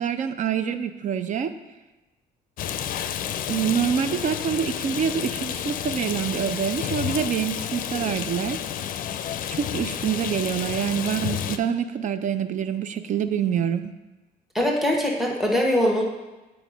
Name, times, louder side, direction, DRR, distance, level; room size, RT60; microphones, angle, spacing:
voice 1, 0.0-1.5 3.5-8.6 9.5-13.9, right 8 dB, 50° right, 11 dB, 0.6 m, -26 dB
Rain, 2.6-11.6, left 10 dB, 55° left, 0.5 m, -30 dB
voice 2, 14.5-16.0, left 1 dB, ahead, 0 dB, 1.2 m, -22 dB
8.1 x 4.8 x 5.2 m, 1.1 s
cardioid pair, 110°, 17 cm